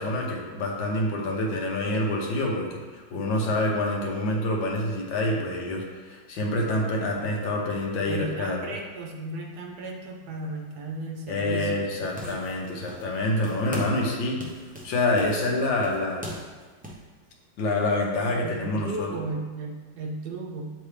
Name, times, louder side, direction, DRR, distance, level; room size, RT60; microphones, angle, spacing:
voice 1, 0.0-8.7 11.3-14.4 14.8-16.2 17.6-19.1, left 1 dB, 85° left, -1 dB, 1.7 m, -27 dB
voice 2, 8.1-11.8 18.4-20.6, right 2 dB, 65° right, 1 dB, 1.2 m, -35 dB
sound 1, 11.9-13.2 13.4-14.1 14.4-17.0, equal, 15° right, 0.3 m, -39 dB
8.3 x 3.9 x 3.3 m, 1.4 s
omnidirectional pair, 2.0 m